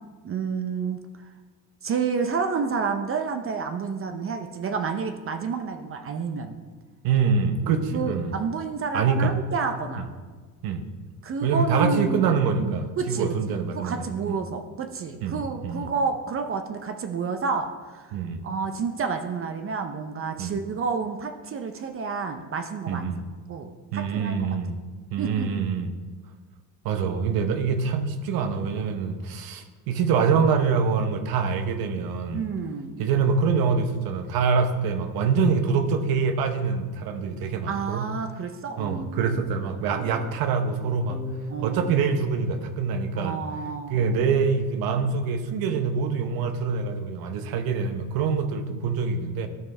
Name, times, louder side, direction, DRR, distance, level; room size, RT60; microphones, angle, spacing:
voice 1, 0.2-1.3 1.8-6.6 7.6-10.1 11.2-12.2 12.6-18.2 18.4-23.1 23.5-24.3 25.2-25.5 32.3-33.1 37.7-39.4 39.9-40.3 41.5-42.0 43.2-44.1, right 5 dB, 40° right, 6 dB, 0.6 m, -30 dB
voice 2, 7.0-8.4 8.9-9.3 10.0-10.1 10.6-10.9 11.4-14.4 15.2-15.9 18.1-18.5 20.4-20.6 22.9-23.2 23.9-24.8 25.1-25.9 26.8-32.5 33.0-38.1 38.8-41.2 41.6-43.4 43.9-49.5, right 5 dB, 75° right, 8 dB, 0.9 m, -25 dB
sound 1, 41.1-43.7, equal, 10° left, 0.5 m, -41 dB
12.5 x 4.3 x 3.2 m, 1.4 s
cardioid pair, 110°, 36 cm